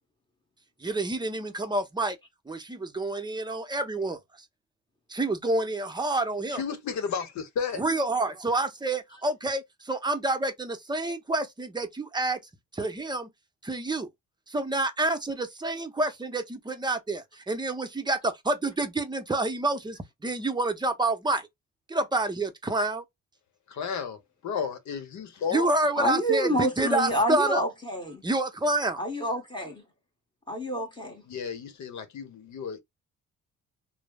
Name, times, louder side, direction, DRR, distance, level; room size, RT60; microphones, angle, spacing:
voice 1, 0.8-2.2 2.5-4.2 5.1-6.6 7.8-12.4 12.7-13.3 13.6-14.1 14.5-21.5 21.9-23.0 25.5-27.6 28.2-29.0, right 2 dB, 15° right, 0.6 m, -28 dB
voice 2, 6.5-7.8 23.7-25.7 31.3-32.8, left 6 dB, 70° left, 0.9 m, -33 dB
voice 3, 26.0-28.2 29.0-29.8 30.5-31.2, equal, 15° left, 1.2 m, -28 dB
3.1 x 2.0 x 2.3 m
cardioid pair, 90°, 30 cm